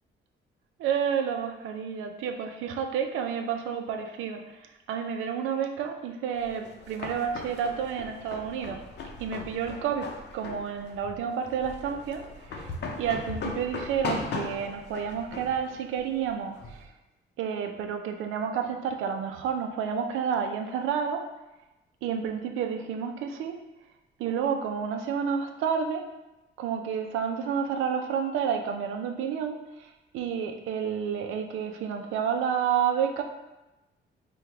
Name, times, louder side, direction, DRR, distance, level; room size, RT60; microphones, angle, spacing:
voice 1, 0.8-8.8 9.2-12.7 13.0-16.9 17.4-21.3 22.0-23.6 24.2-26.1 26.6-33.2, right 7 dB, 90° right, 5 dB, 0.4 m, -30 dB
sound 1, 6.4-16.8, left 3 dB, 60° left, 0.6 m, -38 dB
4.6 x 2.3 x 3.4 m, 1.0 s
cardioid pair, 90°, 20 cm